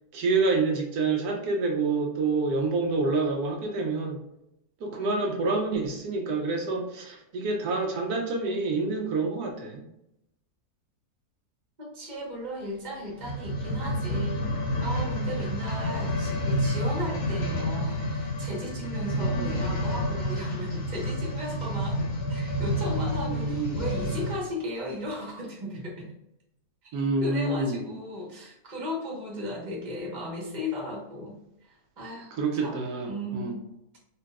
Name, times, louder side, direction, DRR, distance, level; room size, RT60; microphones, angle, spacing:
voice 1, 0.1-4.2 4.8-9.8 19.2-19.7 23.3-23.8 26.9-27.8 32.4-33.5, right 3 dB, 85° right, 1 dB, 1.2 m, -27 dB
voice 2, 11.8-14.4 14.8-26.1 27.2-33.5, left 1 dB, 30° right, -2 dB, 1.2 m, -36 dB
sound 1, 13.1-24.5 25.1-25.2, equal, 65° left, 1.2 m, -29 dB
3.9 x 3.3 x 2.3 m, 0.81 s
omnidirectional pair, 1.6 m